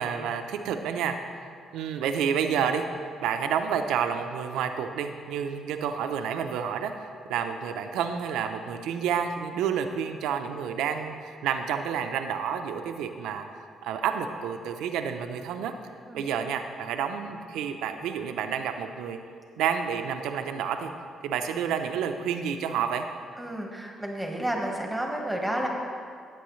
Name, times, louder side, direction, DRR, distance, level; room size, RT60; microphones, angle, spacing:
voice 1, 0.0-2.9 3.2-15.7 16.1-19.2 19.6-20.9 21.2-23.1, right 7 dB, 90° right, 6 dB, 0.6 m, -30 dB
voice 2, 23.4-25.7, right 1 dB, 5° right, 0 dB, 1.4 m, -31 dB
14.5 x 7.7 x 3.2 m, 2.2 s
cardioid pair, 90°, 0 cm